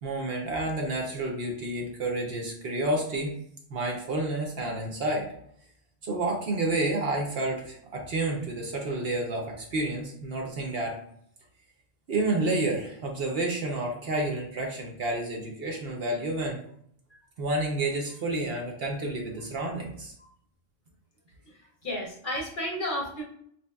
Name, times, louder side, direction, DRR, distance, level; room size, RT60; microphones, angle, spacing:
voice 1, 0.0-3.3 3.7-5.3 6.0-11.0 12.1-16.6 17.4-20.1, right 2 dB, 60° right, 1 dB, 0.8 m, -30 dB
voice 2, 21.5-23.2, left 1 dB, 50° left, -2 dB, 0.8 m, -33 dB
4.1 x 3.0 x 2.2 m, 0.68 s
omnidirectional pair, 1.3 m